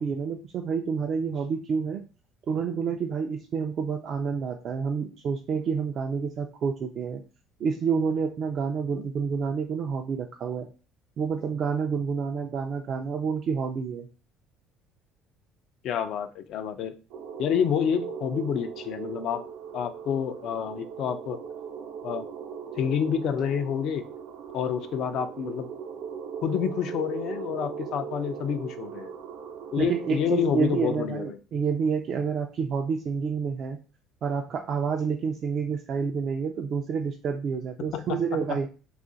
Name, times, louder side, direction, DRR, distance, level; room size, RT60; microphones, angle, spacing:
voice 1, 0.0-2.0 2.5-7.2 7.6-10.7 11.2-14.1 29.8-33.8 34.2-38.7, right 6 dB, 55° right, 2 dB, 0.4 m, -28 dB
voice 2, 15.8-16.9 17.4-19.4 19.7-21.4 22.0-22.3 22.8-24.0 24.5-25.7 26.4-29.1 29.7-31.4 37.9-38.2 38.5-38.6, left 8 dB, 65° left, 10 dB, 0.4 m, -28 dB
sound 1, 17.1-31.0, right 7 dB, 85° right, 0.8 m, -39 dB
2.7 x 2.4 x 3.9 m, 0.34 s
supercardioid pair, 85°, 0 cm